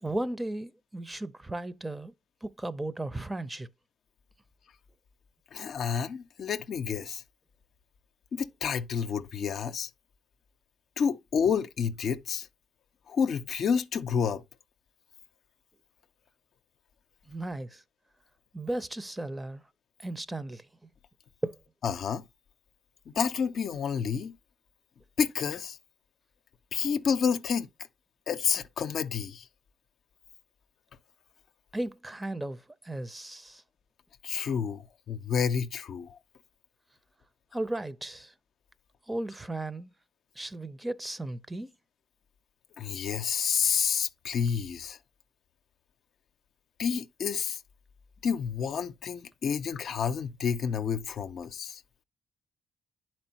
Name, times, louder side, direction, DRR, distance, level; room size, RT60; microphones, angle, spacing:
voice 1, 0.0-2.1 2.4-3.7 17.3-17.8 18.5-19.6 20.0-20.6 21.4-21.6 31.7-33.6 37.5-38.3 39.1-39.9 40.4-41.7, right 1 dB, 20° right, 0.7 m, -35 dB
voice 2, 5.5-7.2 8.3-9.9 11.0-12.5 13.1-14.4 21.8-22.2 23.2-24.4 25.2-25.8 26.7-27.7 28.3-29.4 34.2-36.2 42.8-45.0 46.8-47.6 48.2-51.8, left 7 dB, 65° left, 0.6 m, -29 dB
10.5 x 4.4 x 2.9 m
supercardioid pair, 55°, 0 cm